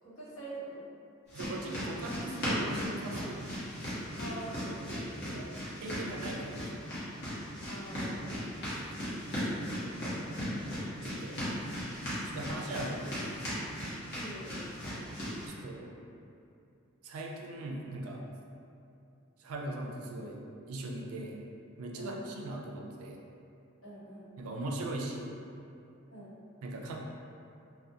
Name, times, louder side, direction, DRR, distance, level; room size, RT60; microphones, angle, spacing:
voice 1, 0.0-0.9 4.2-5.5 7.7-8.4 14.1-14.6 22.0-22.2 23.8-24.3 26.1-26.4, right 1 dB, 85° left, -9 dB, 0.8 m, -45 dB
sound 1, 1.3-15.5, equal, 50° left, 0.8 m, -37 dB
voice 2, 1.3-3.5 5.8-6.9 11.0-11.5 12.3-13.4 15.5-15.9 17.0-18.2 19.4-20.4 20.7-21.4 21.8-23.2 24.4-25.3 26.6-27.0, right 1 dB, 90° right, 0 dB, 0.3 m, -39 dB
2.3 x 2.0 x 2.6 m, 2.7 s
head